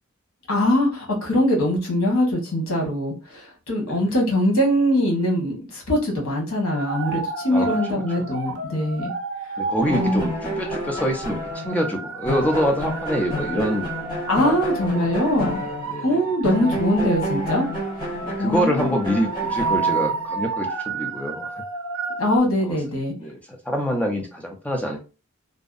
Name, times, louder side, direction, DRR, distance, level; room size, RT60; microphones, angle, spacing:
voice 1, 0.5-9.1 9.9-10.2 14.3-15.6 16.0-17.7 18.0-18.1 18.4-19.0 22.2-23.1, left 1 dB, 85° left, 0 dB, 1.0 m, -22 dB
sound 1, 6.7-22.4, right 4 dB, 70° right, 0.5 m, -31 dB
voice 2, 7.5-8.3 9.6-13.9 14.3-14.7 15.0-15.3 15.9-16.2 18.2-21.6 22.6-22.8 23.2-25.0, equal, 5° left, 1 dB, 0.5 m, -26 dB
sound 2, 9.8-16.2 16.4-20.4, equal, 20° left, 1.0 m, -30 dB
2.6 x 2.0 x 2.4 m, 0.31 s
head